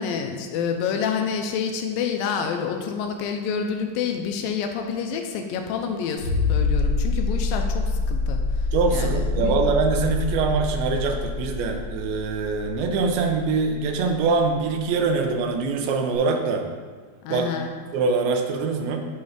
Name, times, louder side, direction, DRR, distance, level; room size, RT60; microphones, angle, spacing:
voice 1, 0.0-9.5 17.2-17.7, left 6 dB, 85° left, 4 dB, 2.3 m, -28 dB
sound 1, 6.2-14.6 16.1-16.2, left 3 dB, 65° left, 1.7 m, -26 dB
voice 2, 8.7-16.7 17.3-17.5 17.9-19.1, right 4 dB, 85° right, 4 dB, 2.6 m, -23 dB
8.5 x 3.1 x 5.0 m, 1.5 s
omnidirectional pair, 4.2 m